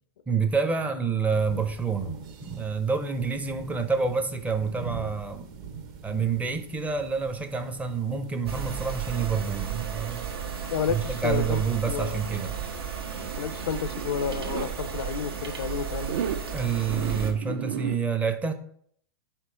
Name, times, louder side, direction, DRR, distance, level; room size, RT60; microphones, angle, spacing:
voice 1, 0.3-2.2 2.4-5.5 6.0-10.3 10.8-12.5 16.5-18.5, right 5 dB, 10° right, 8 dB, 0.5 m, -28 dB
sound 1, 1.3-14.4, right 5 dB, 45° right, 0.9 m, -45 dB
sound 2, 8.5-17.3, right 7 dB, 80° right, 1.1 m, -34 dB
voice 2, 10.7-11.6 11.9-12.2 13.4-16.2, left 7 dB, 75° left, 14 dB, 0.5 m, -30 dB
Zipper (clothing), 13.1-14.7 16.0-16.4 16.9-18.0, right 8 dB, 65° right, 0.5 m, -33 dB
4.5 x 4.2 x 5.5 m, 0.62 s
hypercardioid pair, 120°, 13 cm